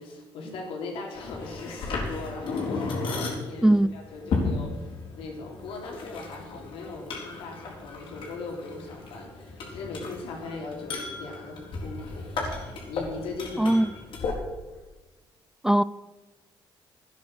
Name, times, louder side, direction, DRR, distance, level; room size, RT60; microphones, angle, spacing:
voice 1, 0.0-13.9 14.2-14.3 14.7-14.8, left 3 dB, 85° left, 0 dB, 3.7 m, -39 dB
sound 1, 1.1-14.3, left 3 dB, 65° left, 4.0 m, -35 dB
voice 2, 3.6-3.9 13.6-13.9 15.6-15.8, right 1 dB, 5° right, 16 dB, 0.3 m, -19 dB
13.0 x 9.6 x 6.6 m, 1.2 s
cardioid pair, 90°, 9 cm